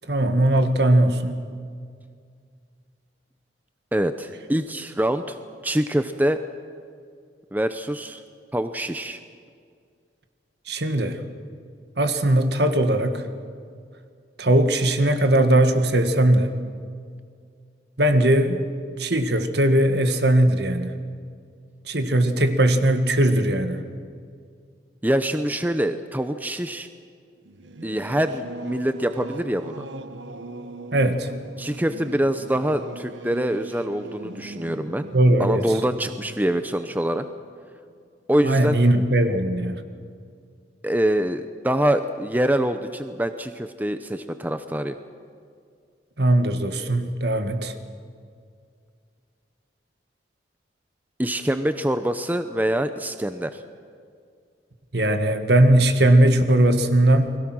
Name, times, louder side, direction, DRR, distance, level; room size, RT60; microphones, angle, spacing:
voice 1, 0.1-1.4 10.7-11.2 12.0-13.2 14.4-16.5 18.0-18.6 19.0-21.0 21.9-23.8 30.9-31.3 35.1-35.7 38.4-39.8 46.2-47.8 54.9-57.4, right 1 dB, 65° right, 7 dB, 1.8 m, -19 dB
voice 2, 3.9-5.4 5.6-6.4 7.5-8.2 8.5-9.2 25.0-26.9 27.8-29.8 31.6-35.1 35.4-37.3 38.3-38.8 40.8-45.0 51.2-53.6, right 1 dB, 10° right, 9 dB, 0.7 m, -25 dB
Singing / Musical instrument, 27.4-37.5, right 2 dB, 80° right, 1.2 m, -40 dB
29.5 x 21.5 x 6.2 m, 2.2 s
head